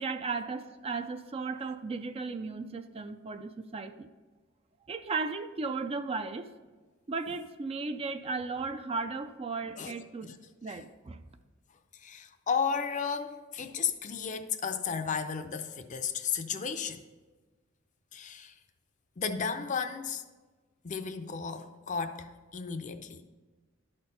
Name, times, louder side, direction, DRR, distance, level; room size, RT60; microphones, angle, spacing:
voice 1, 0.0-4.1 4.9-6.5 7.1-10.3 10.6-11.2, right 4 dB, 30° right, 0.4 m, -35 dB
voice 2, 9.8-10.4 10.7-10.8 11.9-17.0 18.1-18.6 19.2-20.2 20.8-23.2, left 6 dB, 35° left, 0.5 m, -34 dB
11.5 x 4.4 x 5.3 m
head